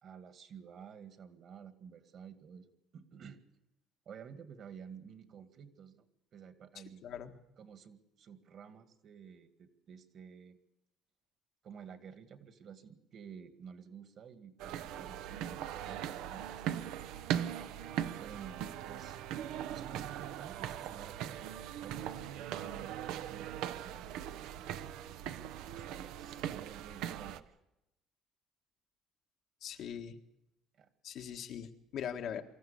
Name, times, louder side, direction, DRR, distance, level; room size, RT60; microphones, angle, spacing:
voice 1, 0.0-3.4 4.1-6.0 6.3-7.0 7.6-10.6 11.6-16.9 18.2-19.2 19.7-21.4 21.8-24.1 24.6-25.0 25.9-27.6 30.8-30.9, right 7 dB, 50° right, 9 dB, 2.1 m, -52 dB
voice 2, 7.0-7.4 29.6-30.2 31.0-32.4, left 8 dB, 60° left, 4 dB, 1.6 m, -41 dB
sound 1, 14.6-27.4, right 10 dB, 85° right, 0.9 m, -40 dB
24.0 x 14.0 x 8.6 m, 0.90 s
cardioid pair, 125°, 0 cm